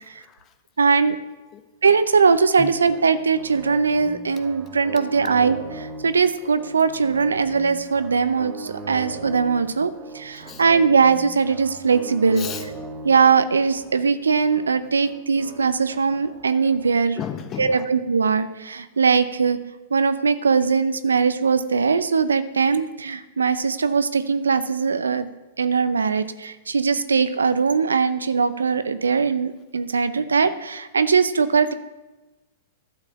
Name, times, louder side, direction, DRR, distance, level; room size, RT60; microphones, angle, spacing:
voice 1, 0.0-0.5 1.5-1.6 2.6-2.8 10.3-10.6 12.4-12.7 17.1-17.8, left 9 dB, 30° left, 7 dB, 1.1 m, -34 dB
voice 2, 0.8-1.2 1.8-12.5 13.0-17.2 17.6-19.6 19.9-25.3 25.6-31.7, right 5 dB, 80° right, 12 dB, 0.6 m, -20 dB
sound 1, 2.9-16.9, right 3 dB, 30° right, 1.1 m, -39 dB
12.0 x 4.8 x 7.1 m, 1.1 s
figure-of-eight pair, 105°, 0 cm